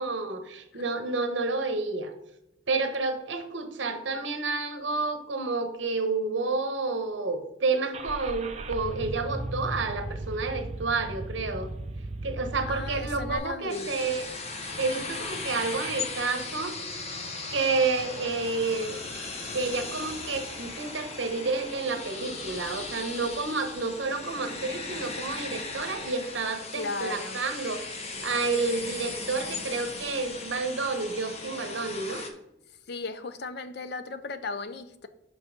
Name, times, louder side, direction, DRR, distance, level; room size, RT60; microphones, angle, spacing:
voice 1, 0.0-2.1 2.7-11.7 12.2-14.3 14.8-16.7 17.5-18.9 19.5-27.8 28.2-32.2, right 3 dB, 80° right, 7 dB, 1.0 m, -30 dB
Car / Engine starting, 7.9-13.4, right 2 dB, 35° right, 0.6 m, -36 dB
sound 1, 12.3-24.7, equal, 15° left, 3.0 m, -51 dB
voice 2, 12.7-13.9 26.7-27.4 32.9-35.1, left 3 dB, 60° left, 12 dB, 0.5 m, -36 dB
sound 2, 13.7-32.3, left 3 dB, 35° left, 0.9 m, -38 dB
5.6 x 5.3 x 5.1 m, 0.89 s
head